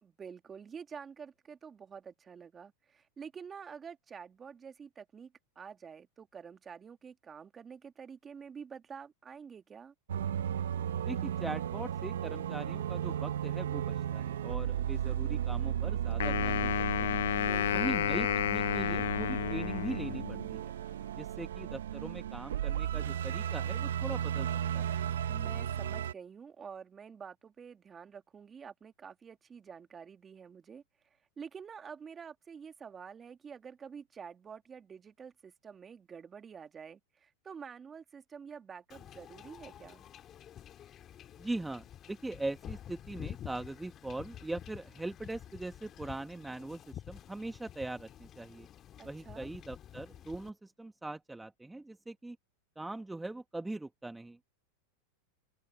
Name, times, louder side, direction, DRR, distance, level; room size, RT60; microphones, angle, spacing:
voice 1, 0.0-9.9 17.3-18.0 25.3-30.8 31.4-40.0 49.0-49.5, right 6 dB, 20° right, 1.9 m, -48 dB
sound 1, 10.1-26.1, right 10 dB, 85° right, 1.1 m, -35 dB
voice 2, 11.0-16.7 17.0-17.2 17.7-20.7 21.2-24.5 24.7-24.9 41.4-48.7 49.1-52.4 52.8-54.4, right 2 dB, 5° right, 1.1 m, -41 dB
Wind instrument woodwind instrument, 16.2-20.5, left 12 dB, 80° left, 0.7 m, -31 dB
Wind / Ocean / Boat Water vehicle, 38.9-50.5, left 10 dB, 35° left, 1.9 m, -49 dB
open air
hypercardioid pair, 120°, 0 cm